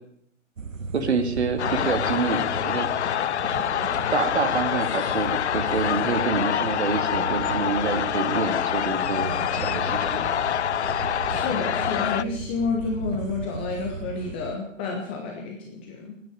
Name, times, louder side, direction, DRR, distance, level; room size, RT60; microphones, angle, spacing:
sound 1, 0.6-14.6, right 5 dB, 80° right, 1.1 m, -36 dB
voice 1, 0.9-2.9 4.1-10.2, right 4 dB, 55° right, 8 dB, 2.2 m, -27 dB
sound 2, 1.6-12.2, left 10 dB, 60° left, 0.5 m, -26 dB
voice 2, 11.3-16.1, left 4 dB, 10° left, 0 dB, 0.6 m, -30 dB
13.5 x 9.5 x 8.6 m, 0.73 s
hypercardioid pair, 150°, 39 cm